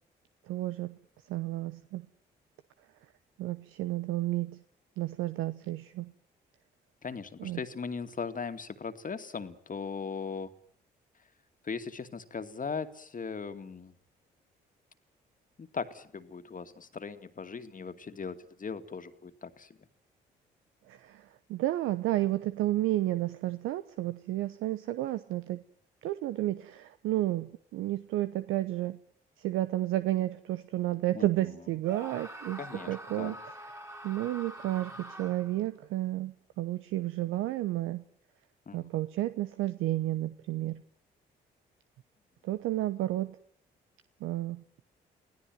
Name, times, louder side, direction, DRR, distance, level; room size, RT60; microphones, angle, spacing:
voice 1, 0.5-1.0 1.3-2.0 3.4-4.6 5.0-6.1 7.4-7.6 20.9-25.6 26.0-29.0 29.4-32.6 32.9-33.4 34.0-38.0 38.7-40.8 42.4-43.4 44.2-44.6, right 15 dB, 75° right, 12 dB, 1.0 m, -31 dB
voice 2, 7.0-10.5 11.6-13.9 15.6-19.8 31.1-31.3 32.6-33.4 38.7-38.9, left 5 dB, 40° left, 9 dB, 2.3 m, -39 dB
Screaming, 31.8-35.6, right 1 dB, 15° right, 3.4 m, -45 dB
25.0 x 17.0 x 9.3 m, 0.63 s
hypercardioid pair, 50°, 21 cm